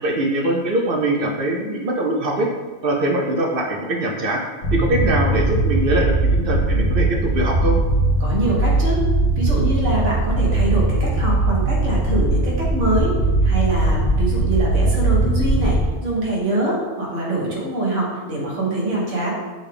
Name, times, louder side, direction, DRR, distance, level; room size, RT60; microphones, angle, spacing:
voice 1, 0.0-2.5 2.8-4.4 4.7-7.8, right 1 dB, 60° right, 0 dB, 0.7 m, -22 dB
sound 1, 4.6-15.9, right 2 dB, 75° left, 1.0 m, -19 dB
voice 2, 8.2-9.0 9.4-19.3, right 1 dB, 85° right, -4 dB, 1.5 m, -24 dB
6.2 x 2.3 x 3.4 m, 1.4 s
omnidirectional pair, 1.2 m